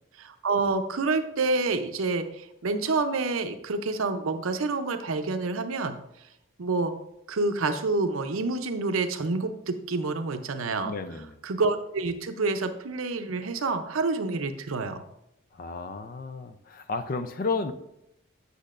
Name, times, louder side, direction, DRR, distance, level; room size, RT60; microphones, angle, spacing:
voice 1, 0.2-6.0 6.6-6.9 7.3-10.9 11.4-15.0, right 3 dB, 90° right, 8 dB, 0.6 m, -28 dB
voice 2, 10.8-11.4 15.5-17.7, left 4 dB, 45° left, 10 dB, 0.4 m, -32 dB
8.5 x 6.5 x 2.5 m, 0.81 s
head